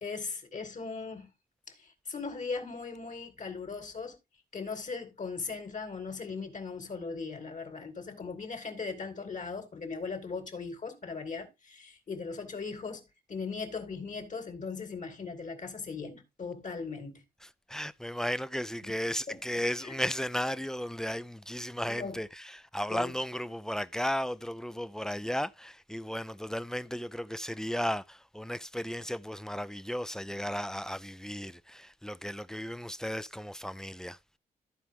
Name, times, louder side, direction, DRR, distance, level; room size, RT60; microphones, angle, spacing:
voice 1, 0.0-1.3 1.7-4.2 4.5-17.2 18.8-18.9 19.3-19.4 19.8-20.0 21.9-22.2 22.9-23.1, left 4 dB, 50° left, 2.7 m, -39 dB
voice 2, 17.7-34.2, equal, 5° left, 0.5 m, -35 dB
14.0 x 5.0 x 3.6 m
wide cardioid pair, 115°, 16 cm